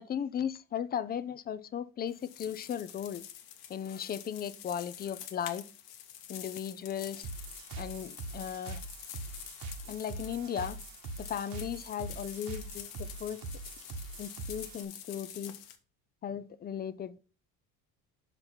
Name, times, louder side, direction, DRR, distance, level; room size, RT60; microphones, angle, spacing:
voice 1, 0.0-3.2 3.7-5.7 6.3-7.3 7.8-8.8 9.9-10.8 11.2-13.4 14.2-15.5 16.2-17.2, left 9 dB, 25° left, 0.5 m, -36 dB
sound 1, 2.1-15.8, left 10 dB, 80° left, 1.2 m, -48 dB
sound 2, 7.2-14.8, right 3 dB, 65° right, 1.3 m, -43 dB
5.7 x 5.2 x 4.4 m
supercardioid pair, 105°, 37 cm